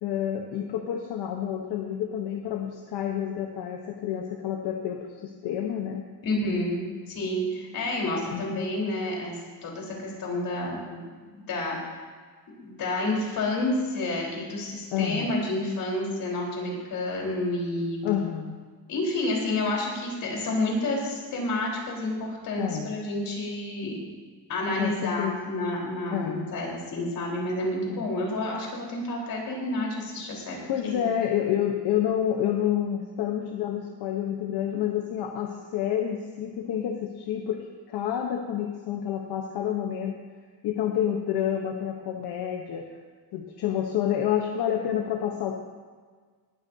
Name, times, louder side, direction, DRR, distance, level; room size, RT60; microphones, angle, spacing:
voice 1, 0.0-6.0 8.3-8.6 14.9-15.3 18.0-18.6 22.6-22.9 24.8-25.3 26.1-26.5 27.9-28.1 30.7-40.2 40.6-42.9 43.3-45.6, left 10 dB, 80° left, 2 dB, 1.1 m, -29 dB
voice 2, 6.2-9.3 9.6-11.0 11.3-11.8 12.6-18.1 18.9-24.0 24.5-31.1, left 2 dB, 60° left, -2 dB, 4.3 m, -29 dB
19.0 x 13.0 x 2.8 m, 1.5 s
cardioid pair, 150°, 39 cm